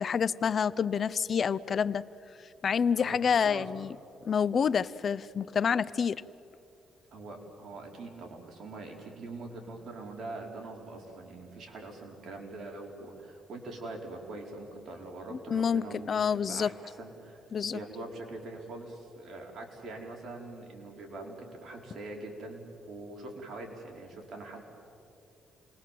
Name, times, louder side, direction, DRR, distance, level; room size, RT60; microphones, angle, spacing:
voice 1, 0.0-2.0 2.6-3.9 4.2-6.2 15.3-16.7 17.5-17.8, left 7 dB, 50° left, 17 dB, 0.5 m, -28 dB
voice 2, 3.0-3.7 7.1-17.4 17.7-24.6, right 2 dB, 55° right, 1 dB, 4.8 m, -43 dB
28.5 x 21.0 x 7.6 m, 2.7 s
cardioid pair, 90°, 0 cm